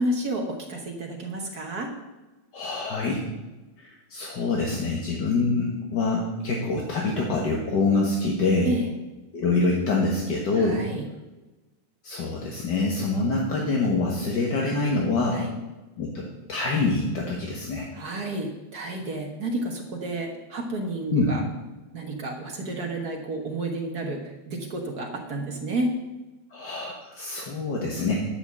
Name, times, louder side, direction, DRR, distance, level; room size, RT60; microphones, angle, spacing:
voice 1, 0.0-1.9 8.6-8.9 10.5-11.0 15.3-15.5 17.9-21.4 21.9-24.2 24.5-25.9, right 1 dB, 50° right, 1 dB, 1.2 m, -30 dB
voice 2, 2.5-3.2 3.8-8.7 9.3-10.9 12.0-15.4 16.0-16.2 16.5-17.9 21.1-21.3 26.5-28.2, left 3 dB, 50° left, -2 dB, 1.5 m, -25 dB
11.0 x 5.9 x 7.3 m, 1.1 s
omnidirectional pair, 3.3 m